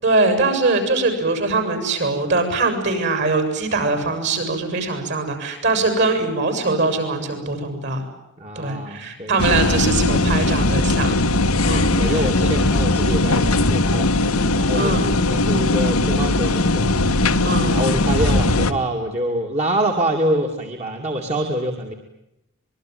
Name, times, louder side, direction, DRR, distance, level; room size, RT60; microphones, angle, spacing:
voice 1, 0.0-8.0 8.6-11.2 11.6-12.3 14.7-15.2 17.4-17.8, right 3 dB, 55° right, 8 dB, 7.4 m, -22 dB
voice 2, 8.4-9.4 12.0-17.0 17.7-21.9, right 1 dB, 30° right, 2 dB, 2.5 m, -25 dB
sound 1, 9.4-18.7, left 2 dB, 90° left, 1.6 m, -19 dB
26.0 x 22.0 x 9.4 m, 0.86 s
head